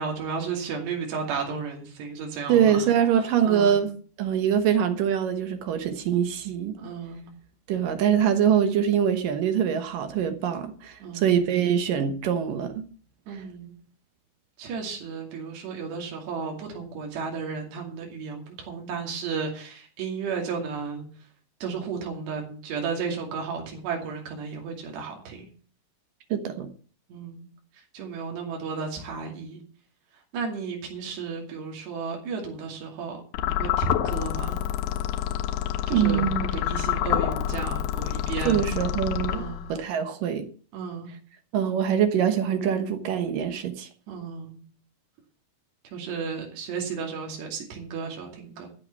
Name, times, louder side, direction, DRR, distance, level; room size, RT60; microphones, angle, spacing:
voice 1, 0.0-2.9 3.4-3.8 6.8-7.3 11.0-11.3 13.3-13.7 14.6-21.1 21.6-25.5 27.1-27.5 27.9-29.6 30.3-34.6 35.9-36.2 36.7-38.6 39.3-39.6 40.7-41.1 44.1-44.6 45.9-48.7, right 5 dB, 85° right, 4.8 m, -33 dB
voice 2, 2.5-3.9 4.2-6.8 7.7-12.7 13.3-13.4 26.3-26.7 35.9-36.5 38.4-40.5 41.5-43.9, right 8 dB, 65° right, 2.5 m, -24 dB
sound 1, 33.3-39.8, left 11 dB, 75° left, 2.2 m, -28 dB
14.5 x 6.9 x 8.2 m
omnidirectional pair, 4.7 m